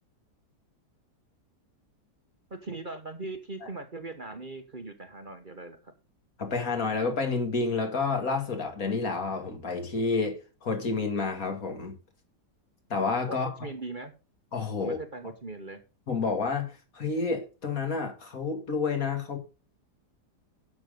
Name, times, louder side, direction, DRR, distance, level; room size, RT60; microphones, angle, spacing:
voice 1, 2.5-5.9 13.3-14.1 14.8-15.8, right 3 dB, 35° right, 1.2 m, -40 dB
voice 2, 6.4-12.0 12.9-13.5 14.5-15.0 16.1-19.4, left 4 dB, 55° left, 2.7 m, -29 dB
11.0 x 6.4 x 5.3 m
omnidirectional pair, 1.8 m